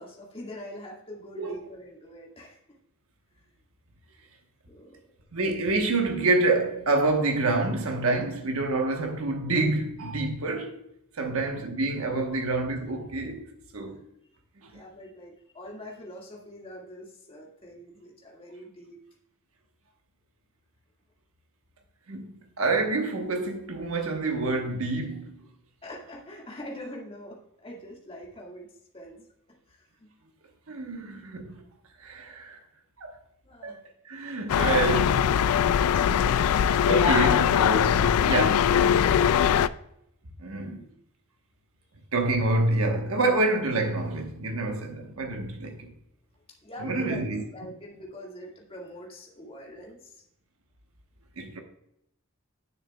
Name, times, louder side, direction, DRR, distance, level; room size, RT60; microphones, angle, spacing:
voice 1, 0.0-2.6 3.3-3.5 4.7-5.1 11.2-11.4 13.9-14.0 14.7-19.0 25.8-29.3 29.7-30.1 33.4-33.8 40.6-40.9 46.6-50.2, equal, 25° left, 1.9 m, -44 dB
voice 2, 5.3-10.8 11.2-14.0 14.6-14.8 22.1-25.5 30.7-31.6 32.0-32.6 33.0-33.2 33.6-33.8 34.0-35.4 36.0-36.3 36.8-39.3 40.4-40.8 42.1-45.9 46.8-47.4 51.4-51.6, right 2 dB, 75° right, 1.1 m, -27 dB
sound 1, 34.5-39.7, left 8 dB, 85° left, 0.3 m, -21 dB
10.0 x 6.6 x 2.3 m
head